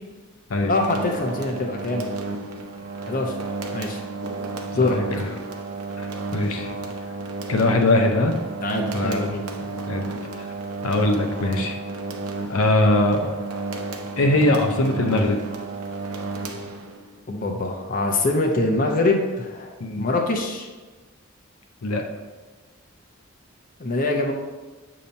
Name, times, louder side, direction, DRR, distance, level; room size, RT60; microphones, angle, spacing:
voice 1, 0.7-2.1 3.0-3.4 3.7-4.0 4.7-5.0 8.6-9.4 17.3-19.7 20.0-20.7 23.8-24.3, left 2 dB, 40° left, 1 dB, 0.6 m, -24 dB
sound 1, 0.7-17.2, right 3 dB, 85° right, 0.6 m, -32 dB
voice 2, 6.3-6.7 7.5-8.3 8.9-9.4 9.9-10.1 10.8-11.8 12.5-13.3 14.2-15.4 19.8-20.1 21.8-22.0, left 2 dB, 75° left, 3 dB, 0.7 m, -21 dB
6.9 x 2.9 x 5.2 m, 1.3 s
head